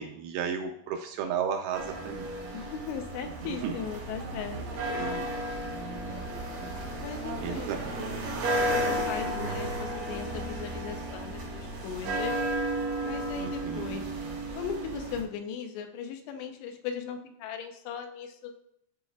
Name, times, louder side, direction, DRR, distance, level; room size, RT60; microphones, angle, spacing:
voice 1, 0.0-2.3 3.6-3.7 5.0-5.3 7.4-7.9 13.4-13.9, right 7 dB, 85° right, 4 dB, 2.3 m, -33 dB
sound 1, 1.7-15.2, right 1 dB, 55° right, 3.1 m, -33 dB
voice 2, 2.5-5.2 7.0-7.8 8.7-12.4 13.0-14.2 14.6-18.5, left 7 dB, 80° left, 6 dB, 2.8 m, -38 dB
12.5 x 4.6 x 2.3 m, 0.75 s
omnidirectional pair, 4.9 m